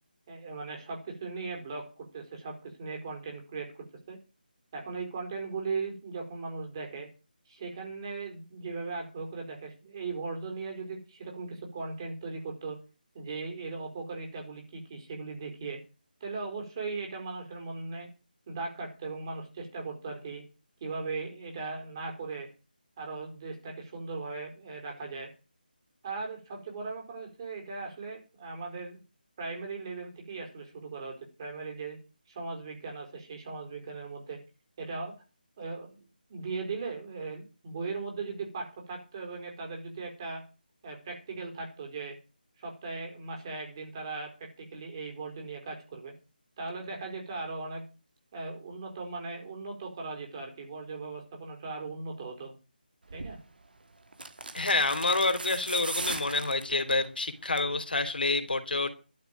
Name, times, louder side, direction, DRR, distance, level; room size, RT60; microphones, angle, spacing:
voice 1, 0.3-4.2 4.7-7.1 7.5-12.8 13.1-15.8 16.2-18.1 18.5-20.4 20.8-22.5 23.0-25.3 26.0-29.0 29.4-32.0 32.3-34.4 34.8-35.1 35.6-36.0 36.3-40.4 40.8-42.2 42.6-46.1 46.6-47.8 48.3-52.6 53.1-53.4, right 4 dB, 30° right, 4.8 m, -38 dB
sound 1, 53.1-53.4 54.1-57.1 57.4-57.8 58.1-58.2, right 3 dB, 70° right, 2.7 m, -38 dB
voice 2, 54.5-58.9, left 3 dB, 75° left, 3.2 m, -28 dB
12.0 x 7.5 x 9.2 m
figure-of-eight pair, 170°, 5 cm